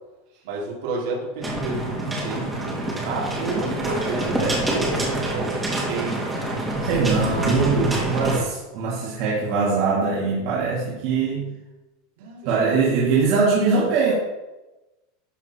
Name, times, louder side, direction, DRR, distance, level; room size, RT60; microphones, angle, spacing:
voice 1, 0.4-6.4 12.2-12.4, right 3 dB, 65° right, -3 dB, 3.7 m, -31 dB
sound 1, 1.4-8.4, right 1 dB, 10° right, 2.3 m, -26 dB
voice 2, 6.8-11.5 12.4-14.1, right 4 dB, 50° right, -5 dB, 2.6 m, -22 dB
12.5 x 7.0 x 4.6 m, 1.0 s
supercardioid pair, 160°, 0 cm